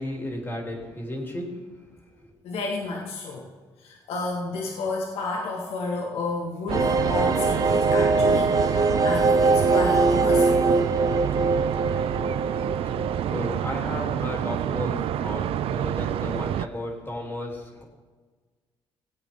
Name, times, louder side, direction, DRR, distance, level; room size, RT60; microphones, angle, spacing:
voice 1, 0.0-1.5 12.8-17.8, left 1 dB, 20° left, -1 dB, 3.3 m, -34 dB
voice 2, 2.4-3.5 3.8-10.6, left 3 dB, 85° left, -1 dB, 1.9 m, -31 dB
sound 1, 6.7-14.2 14.5-14.6 14.8-14.9, right 3 dB, 35° right, 0.9 m, -23 dB
sound 2, 6.7-16.7, right 11 dB, 75° right, 0.4 m, -28 dB
18.0 x 8.3 x 3.8 m, 1.4 s
cardioid pair, 80°, 10 cm